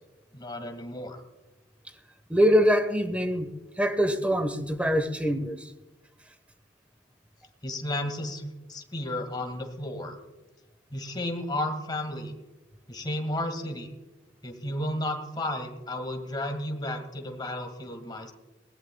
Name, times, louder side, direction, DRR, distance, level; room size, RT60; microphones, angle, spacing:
voice 1, 0.3-1.2 7.6-10.2 10.9-12.3 12.9-13.9 14.4-18.3, left 1 dB, 25° left, 2.1 m, -33 dB
voice 2, 2.3-3.5 3.8-5.6, equal, 5° right, 1.2 m, -23 dB
20.5 x 17.5 x 2.3 m
head